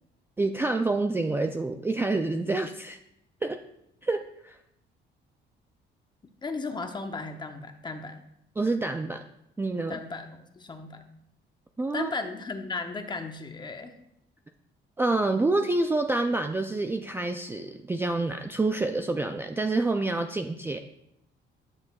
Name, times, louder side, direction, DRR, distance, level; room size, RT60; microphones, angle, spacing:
voice 1, 0.4-3.0 3.4-3.6 4.0-4.6 8.6-9.2 9.6-10.0 11.8-12.1 15.0-20.8, right 2 dB, 10° right, 5 dB, 0.3 m, -27 dB
voice 2, 6.4-8.2 9.9-11.0 11.9-13.9, left 3 dB, 20° left, 7 dB, 0.7 m, -35 dB
10.5 x 6.5 x 2.3 m, 0.80 s
cardioid pair, 115°, 20 cm